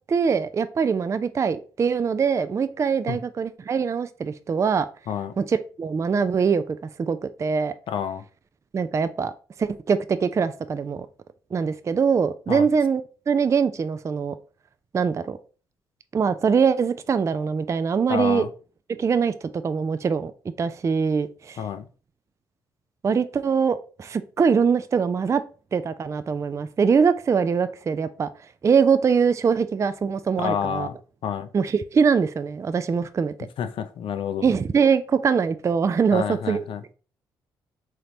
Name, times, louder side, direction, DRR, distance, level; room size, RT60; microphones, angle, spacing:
voice 1, 0.1-4.9 5.4-7.7 8.7-9.3 9.6-11.1 11.5-14.3 14.9-15.4 16.1-18.5 18.9-20.3 20.6-21.6 23.0-25.4 25.7-28.3 28.6-30.9 31.5-33.3 34.4-36.7, right 6 dB, 30° right, 0.3 m, -23 dB
voice 2, 7.9-8.2 12.5-12.7 18.1-18.5 21.6-21.9 30.4-31.0 31.2-31.5 33.6-34.5 36.1-36.8, left 8 dB, 55° left, 0.5 m, -28 dB
3.8 x 3.1 x 2.7 m
hypercardioid pair, 45°, 11 cm